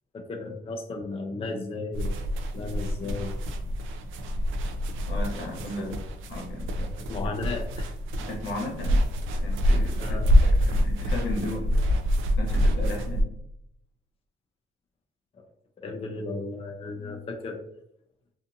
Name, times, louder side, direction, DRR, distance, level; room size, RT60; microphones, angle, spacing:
voice 1, 0.1-2.2 2.5-3.3 5.3-5.4 5.8-6.0 6.7-7.9 10.0-10.3 15.8-17.6, left 3 dB, 30° left, 2 dB, 0.4 m, -35 dB
sound 1, 1.9-13.2, equal, 80° right, 0.4 m, -26 dB
voice 2, 5.1-6.0 6.3-6.7 8.1-9.0 9.4-11.7 12.4-13.3, left 1 dB, 80° left, 0 dB, 1.0 m, -35 dB
2.5 x 2.5 x 2.5 m, 0.75 s
cardioid pair, 90°, 20 cm